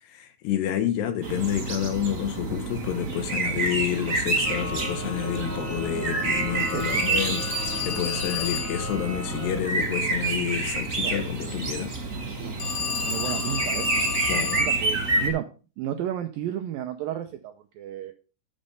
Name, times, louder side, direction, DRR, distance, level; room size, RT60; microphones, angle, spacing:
voice 1, 0.1-11.9 14.3-14.6, left 10 dB, 80° left, 3.3 m, -29 dB
sound 1, 1.2-15.3, right 3 dB, 65° right, 0.7 m, -28 dB
sound 2, 4.4-9.6, left 1 dB, 5° left, 1.1 m, -36 dB
Telephone, 6.6-8.9 12.6-14.8, left 5 dB, 55° left, 4.0 m, -31 dB
voice 2, 6.7-7.1 11.0-11.3 12.4-13.9 14.6-15.5 15.8-18.1, right 11 dB, 85° right, 2.0 m, -33 dB
12.0 x 5.5 x 5.5 m
omnidirectional pair, 4.9 m